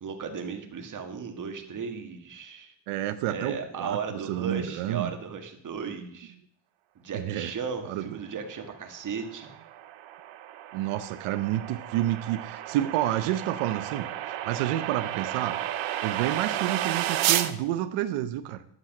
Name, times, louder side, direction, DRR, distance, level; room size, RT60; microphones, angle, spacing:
voice 1, 0.0-2.7 3.3-6.3 7.0-9.5, right 6 dB, 40° right, 4 dB, 1.9 m, -36 dB
voice 2, 2.9-5.1 7.1-7.5 7.8-8.1 10.7-14.1 14.4-15.6 16.0-18.6, right 13 dB, 90° right, 9 dB, 0.8 m, -29 dB
sound 1, 8.8-17.5, right 12 dB, 70° right, 1.0 m, -32 dB
11.5 x 8.0 x 6.0 m, 0.70 s
cardioid pair, 130°, 50 cm